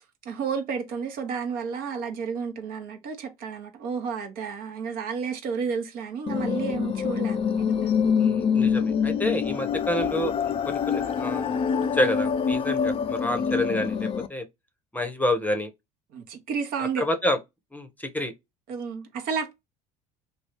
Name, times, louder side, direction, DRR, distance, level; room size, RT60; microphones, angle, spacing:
voice 1, 0.0-7.9 16.1-17.1 18.7-19.5, right 6 dB, 55° right, 0.8 m, -31 dB
sound 1, 6.3-14.3, left 6 dB, 30° left, 0.4 m, -25 dB
voice 2, 8.2-11.5 11.9-14.5 14.9-15.7 16.8-17.4 17.7-18.3, left 1 dB, 10° left, 0.8 m, -28 dB
2.9 x 2.3 x 3.2 m
hypercardioid pair, 65°, 18 cm